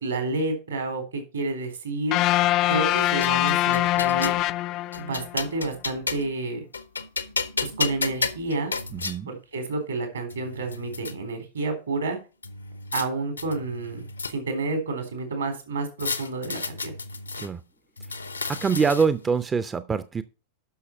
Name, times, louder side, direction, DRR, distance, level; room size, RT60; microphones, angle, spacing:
voice 1, 0.0-2.2 2.7-4.4 5.0-6.7 7.6-8.7 9.3-12.2 12.9-16.9, right 3 dB, 70° right, 3.6 m, -30 dB
sound 1, 2.1-5.4, left 15 dB, 40° left, 0.4 m, -23 dB
sound 2, 2.7-4.4 4.9-6.4 6.7-9.2 9.9-10.0 10.3-11.1 12.4-13.1 13.4-14.6 16.0-17.5 18.0-19.3, left 4 dB, 80° left, 0.8 m, -32 dB
voice 2, 8.9-9.3 17.4-17.6 18.5-20.2, right 5 dB, 20° right, 0.5 m, -24 dB
11.5 x 6.2 x 4.4 m
figure-of-eight pair, 90°, 0 cm